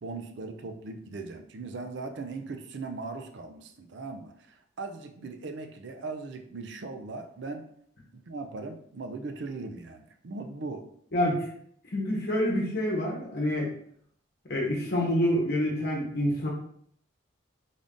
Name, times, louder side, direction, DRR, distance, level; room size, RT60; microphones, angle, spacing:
voice 1, 0.0-7.7 8.1-10.9, right 3 dB, 65° right, 6 dB, 0.4 m, -39 dB
voice 2, 11.1-11.4 11.9-13.7 14.5-16.5, equal, 50° left, -3 dB, 1.0 m, -27 dB
3.6 x 2.6 x 3.6 m, 0.65 s
head